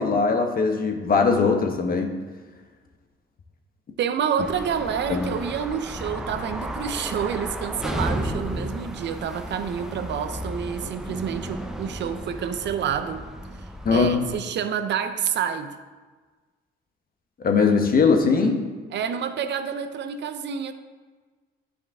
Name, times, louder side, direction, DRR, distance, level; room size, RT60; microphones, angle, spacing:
voice 1, 0.0-2.1 5.1-5.3 13.8-14.2 17.4-18.6, left 4 dB, 45° left, 5 dB, 1.0 m, -20 dB
voice 2, 4.0-13.3 13.9-15.7 18.9-20.7, right 7 dB, 60° right, 9 dB, 0.6 m, -28 dB
sound 1, 4.4-14.4, equal, 5° right, 0.6 m, -33 dB
9.8 x 4.9 x 3.5 m, 1.4 s
cardioid pair, 90°, 20 cm